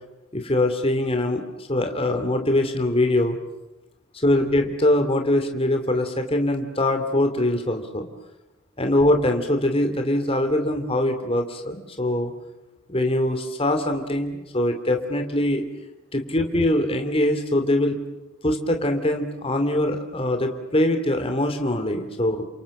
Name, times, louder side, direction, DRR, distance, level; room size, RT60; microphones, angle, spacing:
voice 1, 0.3-3.4 4.1-8.1 8.8-12.3 12.9-15.6 16.1-17.9 18.4-22.4, left 1 dB, 25° left, 5 dB, 2.8 m, -23 dB
29.5 x 27.0 x 7.3 m, 1.0 s
head